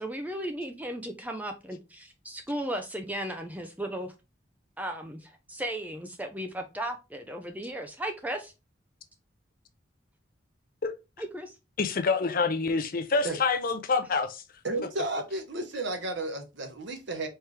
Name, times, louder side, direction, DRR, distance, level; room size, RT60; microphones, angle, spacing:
voice 1, 0.0-4.1 4.8-8.5 11.2-11.6, right 1 dB, 10° right, 0.5 m, -35 dB
voice 2, 11.8-14.4, left 4 dB, 45° left, 0.5 m, -27 dB
voice 3, 14.6-17.3, right 2 dB, 65° right, 1.2 m, -33 dB
4.5 x 3.4 x 3.2 m
head